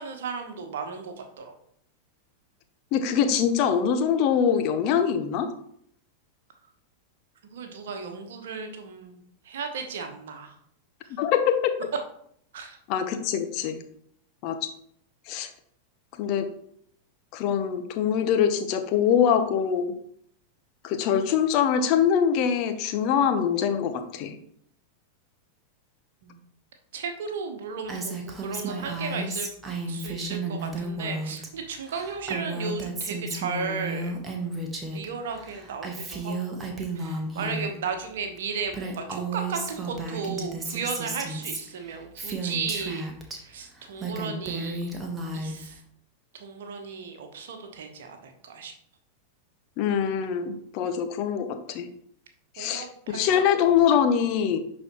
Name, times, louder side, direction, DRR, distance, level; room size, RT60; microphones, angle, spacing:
voice 1, 0.0-1.5 7.5-10.5 12.5-12.8 26.2-26.4 26.9-29.5 29.9-34.2 34.9-36.7 36.9-43.0 43.3-44.9 45.3-45.8 46.3-48.7 52.6-53.7, right 5 dB, 60° right, 5 dB, 1.2 m, -35 dB
voice 2, 2.9-5.5 11.1-11.7 12.9-13.8 14.4-14.7 15.3-15.5 16.2-16.5 17.3-19.9 20.8-24.3 49.8-51.9 52.6-54.6, left 8 dB, 40° left, 8 dB, 0.8 m, -24 dB
Female speech woman speaking, 27.9-31.5 31.8-35.1 35.3-37.7 38.4-38.5 38.7-43.4 43.8-45.7, right 2 dB, 15° right, 1.3 m, -33 dB
11.0 x 4.2 x 3.0 m, 0.68 s
figure-of-eight pair, 90°, 0 cm